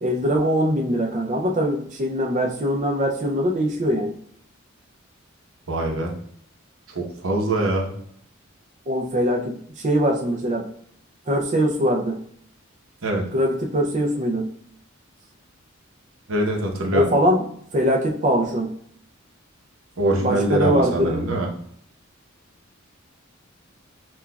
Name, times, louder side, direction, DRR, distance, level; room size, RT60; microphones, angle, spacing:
voice 1, 0.0-4.1 8.9-10.7 11.3-12.2 13.3-14.5 16.9-17.4 17.7-18.7 20.2-21.2, equal, 35° right, 0 dB, 0.4 m, -22 dB
voice 2, 5.7-6.1 6.9-7.9 13.0-13.2 16.3-17.1 20.0-21.5, right 1 dB, 80° right, 1 dB, 0.9 m, -23 dB
5.8 x 2.3 x 2.3 m, 0.65 s
head